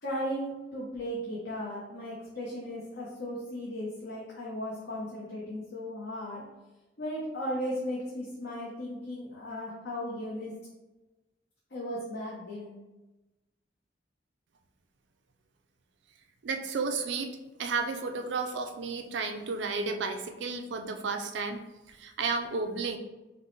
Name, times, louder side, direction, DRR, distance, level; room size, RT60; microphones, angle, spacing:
voice 1, 0.0-6.4 7.0-10.5 11.7-12.8, equal, 70° left, -6 dB, 0.9 m, -36 dB
voice 2, 16.4-17.3 17.6-21.6 21.9-23.0, right 4 dB, 80° right, 5 dB, 0.5 m, -32 dB
5.2 x 2.2 x 3.1 m, 1.1 s
head